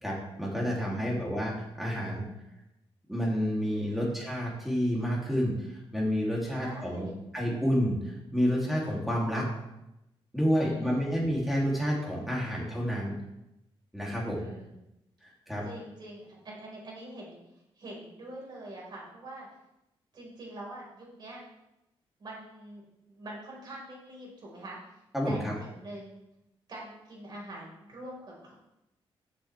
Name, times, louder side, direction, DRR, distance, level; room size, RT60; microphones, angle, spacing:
voice 1, 0.0-2.2 3.1-7.1 7.3-9.4 10.3-13.1 13.9-14.4 15.2-15.6 25.1-25.5, equal, ahead, -4 dB, 2.7 m, -29 dB
voice 2, 0.7-1.3 3.6-4.1 6.6-7.2 10.6-11.1 14.2-14.7 15.6-17.4 17.8-19.5 20.1-21.4 22.2-26.2 26.7-28.5, right 1 dB, 45° right, -3 dB, 4.3 m, -45 dB
14.0 x 7.5 x 3.3 m, 0.89 s
wide cardioid pair, 165°, 10 cm